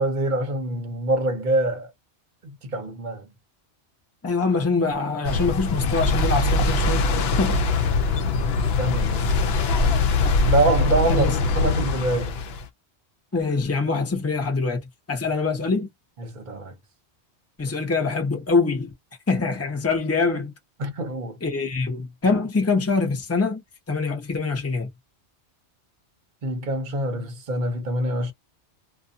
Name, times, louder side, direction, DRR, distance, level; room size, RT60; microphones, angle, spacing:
voice 1, 0.0-1.9 2.4-3.3 8.5-9.6 10.3-12.4 16.2-16.7 20.8-21.4 26.4-28.3, right 2 dB, 45° right, 0.9 m, -25 dB
voice 2, 4.2-7.1 7.4-7.6 11.1-11.4 13.3-14.8 15.1-15.9 17.6-18.9 19.3-20.5 21.4-24.9, left 4 dB, 15° left, 0.8 m, -24 dB
sound 1, 5.3-12.7, left 3 dB, 65° left, 0.8 m, -22 dB
2.6 x 2.3 x 2.6 m
omnidirectional pair, 1.2 m